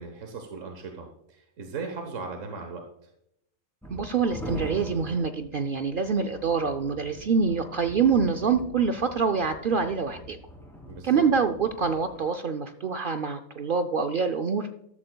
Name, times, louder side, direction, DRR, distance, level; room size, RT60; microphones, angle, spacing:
voice 1, 0.0-3.1 10.8-11.2, right 4 dB, 80° right, 4 dB, 1.5 m, -38 dB
sound 1, 3.8-12.2, equal, ahead, 3.1 m, -42 dB
voice 2, 3.9-10.4 11.0-14.7, right 5 dB, 55° right, 7 dB, 0.6 m, -25 dB
13.5 x 13.0 x 2.2 m, 0.77 s
omnidirectional pair, 1.3 m